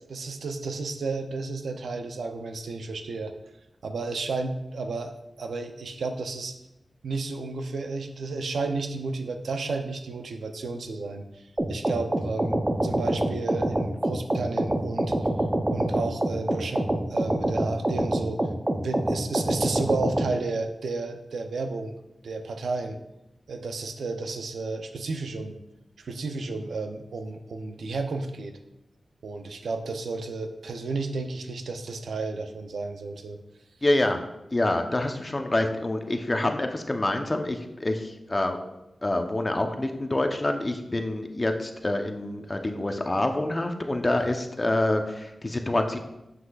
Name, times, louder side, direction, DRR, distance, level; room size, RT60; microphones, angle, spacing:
voice 1, 0.1-3.3 3.8-5.1 5.4-6.5 7.0-15.3 15.7-18.5 18.8-21.9 22.2-23.0 23.5-25.6 26.0-28.6 29.2-33.4 44.1-44.2, right 3 dB, 90° right, 6 dB, 0.5 m, -32 dB
sound 1, 11.6-20.3, right 1 dB, 25° right, 0.7 m, -26 dB
voice 2, 33.8-34.2 34.5-38.6 39.0-46.0, left 1 dB, 30° left, 5 dB, 0.8 m, -26 dB
7.6 x 6.2 x 2.4 m, 0.92 s
cardioid pair, 65°, 0 cm